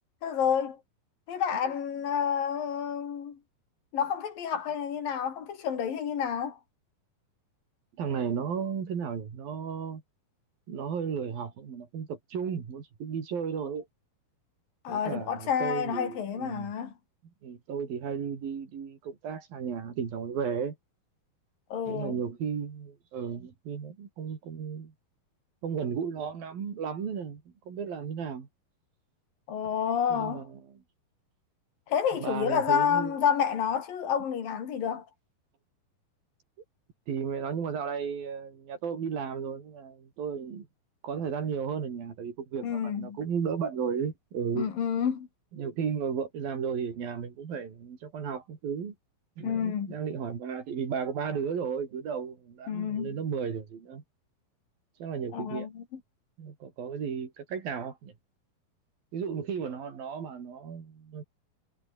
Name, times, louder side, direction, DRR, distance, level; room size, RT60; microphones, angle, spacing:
voice 1, 0.2-0.8 1.3-3.4 3.9-6.6 14.8-16.9 21.7-22.2 29.5-30.5 31.9-35.0 42.6-43.2 44.6-45.3 49.4-50.0 52.7-53.1 55.3-55.8, left 8 dB, 70° left, 4.6 m, -29 dB
voice 2, 8.0-10.0 10.7-13.9 14.9-16.7 17.4-20.8 21.9-24.9 25.6-28.5 30.1-30.6 32.2-33.2 37.1-40.7 41.0-44.7 45.6-49.0 49.4-54.0 55.0-55.7 56.4-58.1 59.1-61.2, right 6 dB, 70° right, 5.3 m, -34 dB
omnidirectional pair, 4.3 m